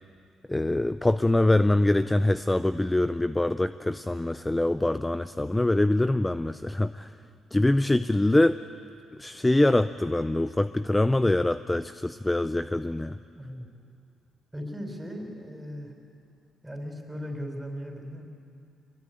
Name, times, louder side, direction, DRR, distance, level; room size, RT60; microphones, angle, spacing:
voice 1, 0.5-7.1 7.5-8.6 9.2-13.2, left 1 dB, 10° left, 12 dB, 0.5 m, -24 dB
voice 2, 13.3-13.7 14.5-15.9 16.6-18.3, equal, 10° right, 3 dB, 4.8 m, -37 dB
24.0 x 22.0 x 9.3 m, 2.4 s
cardioid pair, 90°, 0 cm